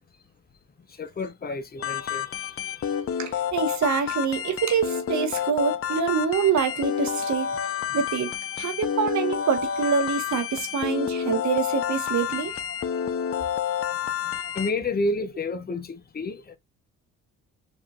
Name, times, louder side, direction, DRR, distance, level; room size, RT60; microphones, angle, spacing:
voice 1, 1.0-2.9 14.5-16.6, left 2 dB, 30° left, 1.0 m, -30 dB
sound 1, 1.8-14.7, left 8 dB, 50° left, 0.7 m, -29 dB
voice 2, 3.2-12.6, right 6 dB, 65° right, 1.5 m, -26 dB
7.2 x 2.8 x 2.5 m
cardioid pair, 90°, 30 cm